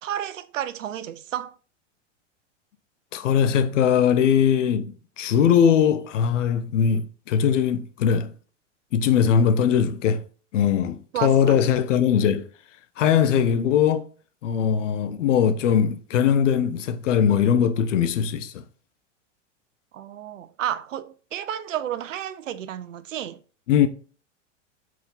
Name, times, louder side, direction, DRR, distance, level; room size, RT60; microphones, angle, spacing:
voice 1, 0.0-1.5 11.1-11.6 19.9-23.4, right 11 dB, 85° right, 0.7 m, -31 dB
voice 2, 3.1-8.3 8.9-10.2 10.5-12.5 13.0-14.0 14.4-18.6 23.7-23.9, left 8 dB, 75° left, 0.9 m, -20 dB
4.7 x 4.3 x 5.4 m
hypercardioid pair, 110°, 37 cm